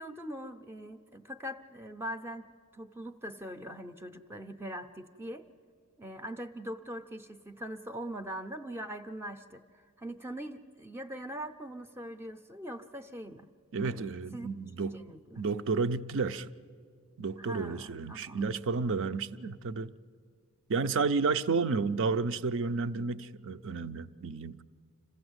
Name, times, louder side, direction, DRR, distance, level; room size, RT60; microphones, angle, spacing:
voice 1, 0.0-5.5 6.0-9.6 10.0-13.5 13.8-14.5 14.8-15.4 17.4-18.6, equal, 10° right, 0.5 m, -42 dB
voice 2, 13.7-14.9 15.4-16.5 17.2-19.9 20.7-24.6, right 4 dB, 60° right, 0.5 m, -31 dB
26.5 x 15.5 x 7.9 m
head